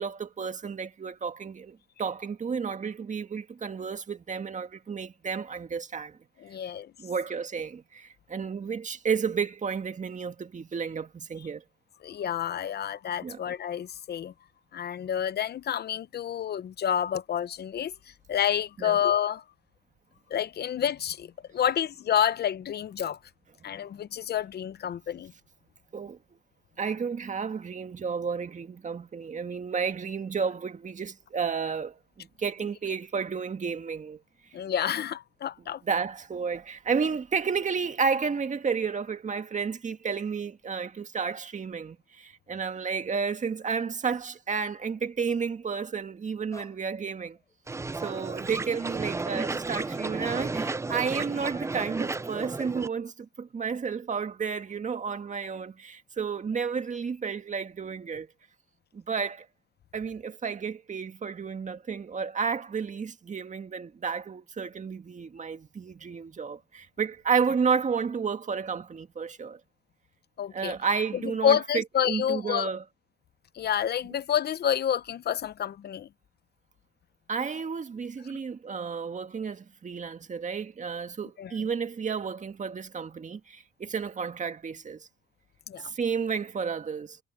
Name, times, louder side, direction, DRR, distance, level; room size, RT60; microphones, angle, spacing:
voice 1, 0.0-6.2 7.0-11.6 13.2-13.4 18.8-19.0 25.9-26.2 26.8-34.2 35.8-47.4 48.0-58.3 58.9-59.5 59.9-69.6 70.5-72.8 77.3-85.1 85.8-87.2, right 6 dB, 40° right, 1.8 m, -32 dB
voice 2, 6.4-6.9 12.0-14.3 14.7-17.9 18.3-19.4 20.3-23.2 23.6-25.3 34.5-35.8 70.4-70.7 71.1-72.7 73.5-76.1 81.4-81.5 85.7-85.9, left 9 dB, 55° left, 0.7 m, -29 dB
sound 1, 46.5-46.9 47.3-47.5 47.9-48.9 49.3-49.7 50.9-51.4, left 2 dB, 15° left, 5.9 m, -50 dB
sound 2, 47.7-52.9, right 3 dB, 15° right, 0.5 m, -33 dB
cardioid pair, 90°, 20 cm